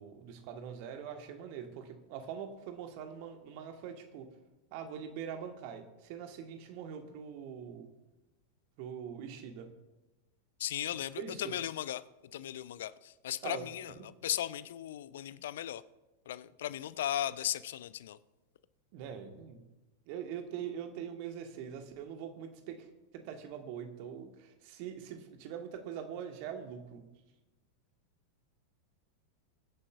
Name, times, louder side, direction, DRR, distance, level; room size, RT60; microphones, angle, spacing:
voice 1, 0.0-4.3 4.7-7.9 8.8-9.7 11.2-11.5 13.4-13.6 14.0-14.1 18.9-19.6 20.1-22.9 23.1-27.0, right 8 dB, 45° right, 5 dB, 1.5 m, -43 dB
voice 2, 10.6-12.0 12.3-15.8 16.3-18.2, left 12 dB, 60° left, 18 dB, 0.4 m, -37 dB
22.0 x 9.9 x 2.5 m, 1.0 s
figure-of-eight pair, 90°, 0 cm